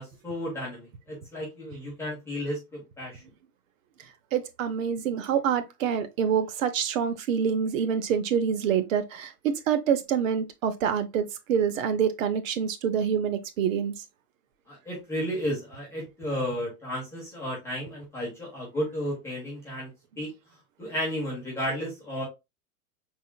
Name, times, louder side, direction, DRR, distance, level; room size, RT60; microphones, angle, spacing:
voice 1, 0.0-3.2 14.7-19.9 20.2-22.2, equal, 5° left, 1.2 m, -33 dB
voice 2, 4.0-13.9, right 7 dB, 55° right, 0.8 m, -26 dB
5.3 x 3.7 x 2.2 m
supercardioid pair, 175°, 47 cm